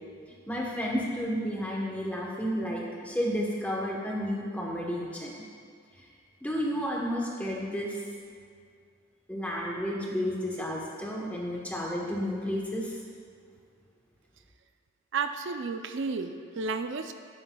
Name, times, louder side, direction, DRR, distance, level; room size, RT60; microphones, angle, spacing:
voice 1, 0.5-5.3 6.4-8.0 9.3-13.0, equal, 5° left, -3 dB, 1.1 m, -31 dB
voice 2, 15.1-17.1, right 4 dB, 60° right, 8 dB, 0.5 m, -32 dB
10.0 x 8.7 x 2.3 m, 2.3 s
head